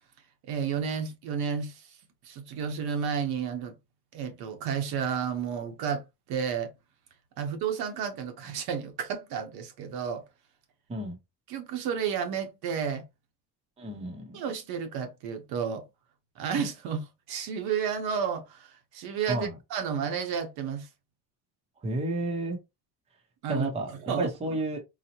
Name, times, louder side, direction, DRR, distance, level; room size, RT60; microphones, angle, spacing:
voice 1, 0.5-1.8 2.2-3.7 4.1-6.7 7.4-10.2 11.5-13.0 14.3-15.8 16.4-20.9 23.4-23.7 24.0-24.3, right 7 dB, 70° right, 0.9 m, -31 dB
voice 2, 13.8-14.4 19.3-19.6 21.8-22.6 23.5-23.9 24.2-24.8, right 1 dB, 15° right, 0.6 m, -31 dB
4.0 x 2.0 x 2.8 m
cardioid pair, 175°, 38 cm